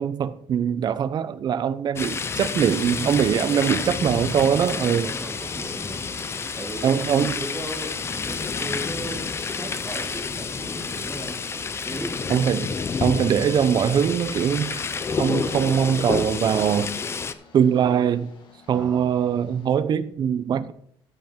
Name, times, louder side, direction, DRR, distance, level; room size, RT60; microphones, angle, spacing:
voice 1, 0.0-5.1 6.8-7.4 12.3-12.7 13.0-14.8 15.2-16.9 17.5-18.3 18.7-20.7, right 8 dB, 45° right, 0.7 m, -22 dB
sound 1, 2.0-17.3, left 5 dB, 25° left, 0.6 m, -29 dB
sound 2, 2.6-19.8, left 4 dB, 50° left, 2.1 m, -47 dB
voice 2, 3.5-4.0 4.5-6.0 6.5-11.4 11.8-12.3 18.7-19.1, right 1 dB, 5° right, 2.0 m, -36 dB
14.0 x 5.5 x 5.2 m
cardioid pair, 150°, 10 cm